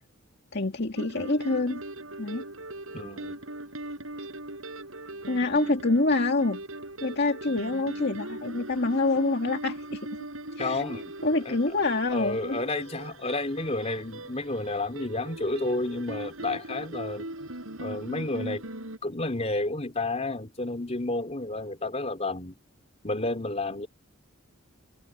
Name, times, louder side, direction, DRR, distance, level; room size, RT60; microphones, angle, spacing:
voice 1, 0.5-1.8 2.2-2.4 5.3-6.6 7.0-10.0 10.6-10.8 11.2-12.6, left 2 dB, 55° left, 2.0 m, -26 dB
sound 1, 1.0-19.0, right 1 dB, 75° right, 7.4 m, -39 dB
voice 2, 2.9-3.4 10.6-11.1 11.5-11.7 12.1-17.3 17.8-18.6 19.0-22.5 23.0-23.9, left 2 dB, 30° left, 3.9 m, -31 dB
head